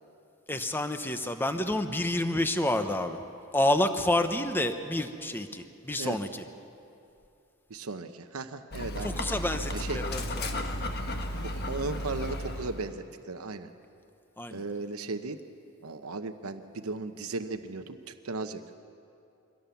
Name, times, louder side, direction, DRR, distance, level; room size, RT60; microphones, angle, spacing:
voice 1, 0.5-3.2 3.5-6.4 9.0-10.6 14.4-14.6, left 1 dB, 10° left, 8 dB, 0.9 m, -29 dB
voice 2, 7.7-9.2 9.7-10.0 11.4-13.7 14.5-15.4 15.8-18.7, right 3 dB, 85° right, 8 dB, 0.9 m, -36 dB
Dog, 8.7-12.9, left 1 dB, 50° left, 1.4 m, -34 dB
24.0 x 17.5 x 7.1 m, 2.6 s
head